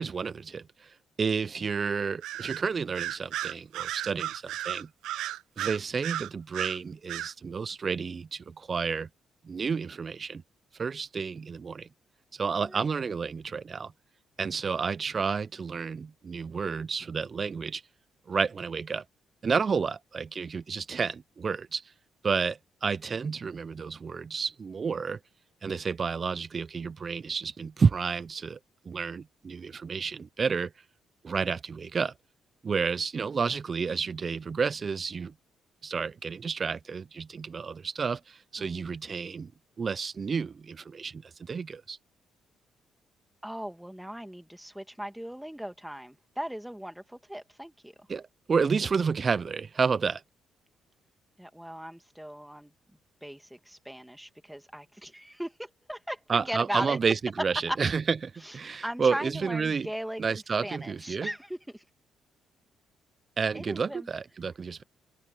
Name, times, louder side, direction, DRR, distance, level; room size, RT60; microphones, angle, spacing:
voice 1, 0.0-4.9 5.6-9.1 9.5-10.4 10.8-11.9 12.3-13.9 14.4-17.8 18.3-19.0 19.4-21.9 22.2-25.2 25.6-28.6 28.9-30.7 31.2-32.1 32.6-35.3 35.8-39.5 39.8-42.0 48.1-48.2 48.5-50.2 56.3-59.9 60.2-61.3 63.4-64.8, right 5 dB, 40° right, 0.4 m, -30 dB
Bird vocalization bird call bird song, 2.2-2.6 2.9-6.8 7.1-7.3, right 13 dB, 85° right, 0.8 m, -34 dB
voice 2, 12.7-13.0 38.6-38.9 43.4-48.1 51.4-52.7 53.2-57.0 57.7-57.8 58.4-61.8 63.5-64.1, equal, 5° right, 2.2 m, -38 dB
cardioid pair, 90°, 0 cm